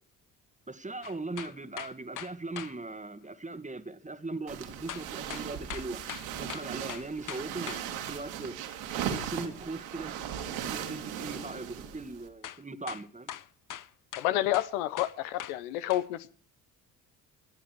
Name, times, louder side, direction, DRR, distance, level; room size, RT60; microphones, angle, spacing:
voice 1, 0.7-6.0 6.4-8.6 9.1-10.1 10.5-13.3, right 3 dB, 15° right, 1.9 m, -39 dB
sound 1, 1.0-2.7 4.9-7.8 12.4-12.6 12.9-15.6 15.9-16.1, left 10 dB, 40° left, 1.0 m, -41 dB
sound 2, 4.5-12.3, right 9 dB, 70° right, 3.1 m, -38 dB
voice 2, 14.2-16.3, left 14 dB, 70° left, 1.1 m, -29 dB
24.5 x 11.0 x 4.7 m
hypercardioid pair, 50°, 46 cm